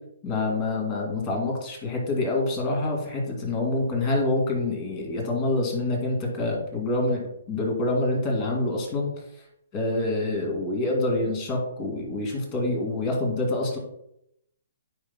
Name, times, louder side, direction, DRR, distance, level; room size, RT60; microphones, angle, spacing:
voice 1, 0.2-9.1 9.7-13.8, left 2 dB, 30° left, 0 dB, 2.5 m, -26 dB
8.7 x 5.7 x 2.2 m, 0.77 s
hypercardioid pair, 150°, 0 cm